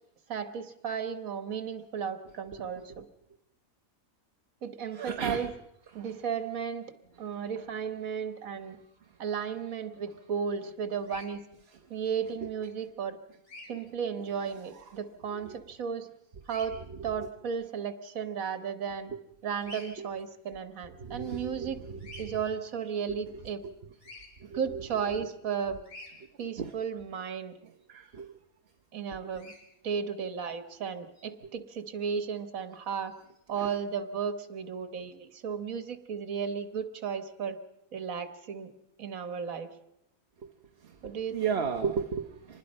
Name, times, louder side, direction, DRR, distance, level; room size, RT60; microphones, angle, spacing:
voice 1, 0.3-3.1 4.6-5.5 5.9-6.9 7.2-8.8 9.2-11.4 11.9-13.2 13.7-16.1 16.5-19.1 19.4-21.8 22.2-23.6 24.5-25.8 26.4-27.5 28.9-29.5 29.8-33.1 33.5-37.6 37.9-38.7 39.0-39.7 41.0-41.6, right 7 dB, 75° right, 9 dB, 1.7 m, -34 dB
voice 2, 4.9-5.5 6.0-6.1 12.4-12.5 15.4-15.6 19.1-19.2 20.0-20.1 21.0-22.4 23.1-23.2 24.4-24.8 25.2-25.3 26.6-26.7 27.9-28.3 29.2-29.3 33.6-33.7 40.8-41.0 41.3-42.6, right 6 dB, 50° right, 4 dB, 1.2 m, -34 dB
Bird vocalization bird call bird song, 11.0-11.3 13.4-13.7 16.4-16.7 19.6-19.9 22.0-22.3 24.0-24.3 25.8-26.1 29.3-29.6, left 2 dB, 55° left, 4.5 m, -47 dB
25.5 x 20.5 x 5.4 m, 0.89 s
omnidirectional pair, 1.5 m